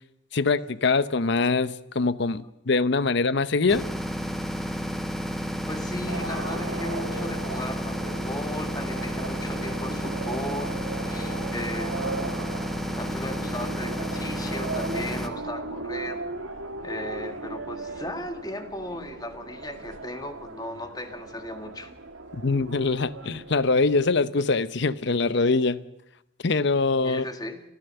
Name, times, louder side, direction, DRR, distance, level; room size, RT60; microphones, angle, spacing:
voice 1, 0.3-3.8 22.3-25.8 26.4-27.3, left 3 dB, 60° left, 0.8 m, -23 dB
sound 1, 3.7-15.3, equal, ahead, 1.1 m, -31 dB
voice 2, 5.5-12.3 12.9-16.3 16.8-21.9 27.0-27.6, left 1 dB, 20° left, 1.7 m, -36 dB
sound 2, 6.1-24.1, right 3 dB, 80° right, 2.0 m, -37 dB
29.5 x 13.5 x 6.8 m
head